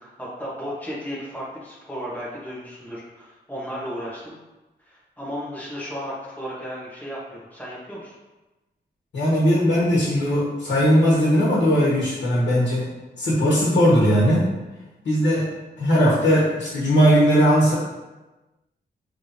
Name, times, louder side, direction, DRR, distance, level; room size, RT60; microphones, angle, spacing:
voice 1, 0.0-4.3 4.8-8.1, equal, 10° left, -7 dB, 1.1 m, -34 dB
voice 2, 9.1-12.9 13.2-14.5 15.0-15.5 15.8-17.7, equal, 75° left, -7 dB, 1.4 m, -18 dB
5.6 x 3.3 x 2.7 m, 1.1 s
wide cardioid pair, 175°, 18 cm